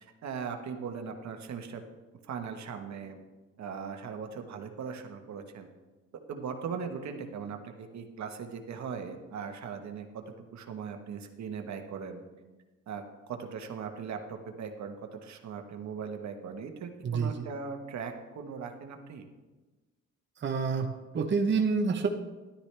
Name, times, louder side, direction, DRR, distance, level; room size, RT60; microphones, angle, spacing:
voice 1, 0.0-1.8 2.2-3.2 3.6-5.7 6.3-10.2 10.5-12.2 12.9-13.0 13.3-19.2, right 6 dB, 65° right, 5 dB, 1.3 m, -39 dB
voice 2, 17.0-17.5 20.4-22.1, right 5 dB, 40° right, 3 dB, 0.9 m, -28 dB
13.0 x 11.5 x 3.4 m, 1.2 s
cardioid pair, 90°, 30 cm